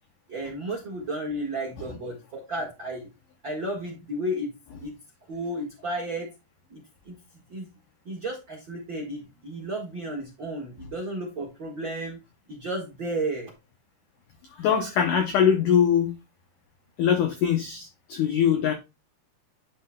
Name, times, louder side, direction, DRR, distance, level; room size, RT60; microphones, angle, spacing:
voice 1, 0.3-3.1 3.4-4.5 4.8-4.9 5.3-6.3 6.7-6.8 7.0-7.1 7.5-7.7 8.0-12.2 12.5-13.5, right 1 dB, 60° right, 1.2 m, -33 dB
voice 2, 14.6-16.1 17.0-18.7, left 8 dB, 90° left, 1.8 m, -22 dB
11.0 x 5.2 x 2.3 m
omnidirectional pair, 5.0 m